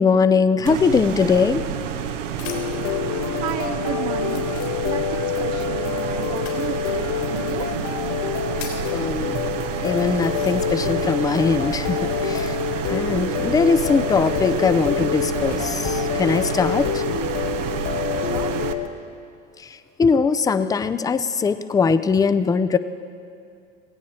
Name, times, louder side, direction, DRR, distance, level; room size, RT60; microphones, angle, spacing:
voice 1, 0.0-1.6 8.9-9.5 9.8-12.6 12.9-17.0 19.6-22.8, left 5 dB, 10° left, 12 dB, 0.4 m, -21 dB
sound 1, 0.7-18.7, right 8 dB, 85° right, 0.9 m, -29 dB
sound 2, 1.9-2.9 3.6-3.7 4.2-5.2 6.3-6.6 7.5-7.6 8.1-8.9 9.6-9.7 10.1-11.0 11.3-12.8 14.1-15.6 16.3-16.7, left 7 dB, 75° left, 4.0 m, -43 dB
sound 3, 2.4-18.9, left 9 dB, 45° left, 1.0 m, -27 dB
voice 2, 3.2-4.5 4.9-7.7 18.2-18.7, right 12 dB, 60° right, 7 dB, 0.7 m, -33 dB
17.5 x 16.5 x 4.3 m, 2.4 s
hypercardioid pair, 90°, 37 cm